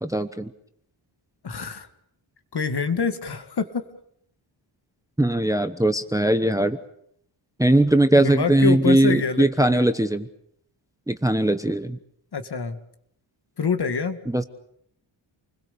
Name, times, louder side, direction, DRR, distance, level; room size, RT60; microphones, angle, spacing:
voice 1, 0.0-0.5 5.2-6.8 7.6-10.3 11.1-12.0 14.3-14.4, right 1 dB, 5° right, 10 dB, 1.0 m, -20 dB
voice 2, 1.4-1.9 2.5-3.8 8.2-9.9 12.3-12.8 13.6-14.2, left 5 dB, 50° left, 8 dB, 2.2 m, -26 dB
28.5 x 21.0 x 6.9 m, 0.71 s
wide cardioid pair, 120°, 49 cm